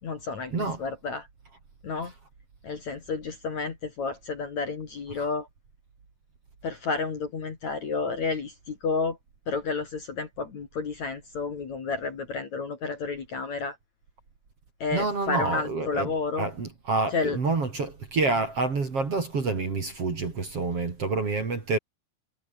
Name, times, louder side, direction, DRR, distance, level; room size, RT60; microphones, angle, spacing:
voice 1, 0.0-1.3 1.8-2.1 2.6-5.5 6.6-9.2 9.5-13.8 14.8-16.5 17.1-17.4, left 4 dB, 45° left, 3.3 m, -31 dB
voice 2, 14.9-16.1 16.4-21.8, right 3 dB, 35° right, 3.6 m, -28 dB
omnidirectional pair, 5.5 m